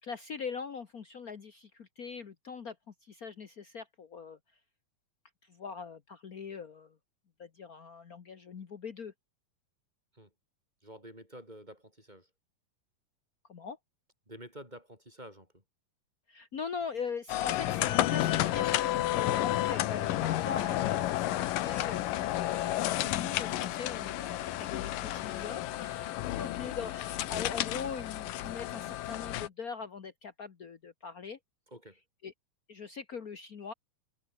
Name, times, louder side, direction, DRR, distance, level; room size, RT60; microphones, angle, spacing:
voice 1, 0.0-4.4 5.4-7.0 7.4-9.1 13.5-13.8 16.3-31.4 32.2-32.3 32.7-33.7, left 6 dB, 55° left, 0.9 m, -41 dB
voice 2, 10.8-12.3 14.3-15.6 26.6-26.9 31.7-32.0, right 1 dB, 10° right, 8.0 m, -49 dB
sound 1, 17.3-29.5, left 14 dB, 85° left, 2.8 m, -31 dB
omnidirectional pair, 3.8 m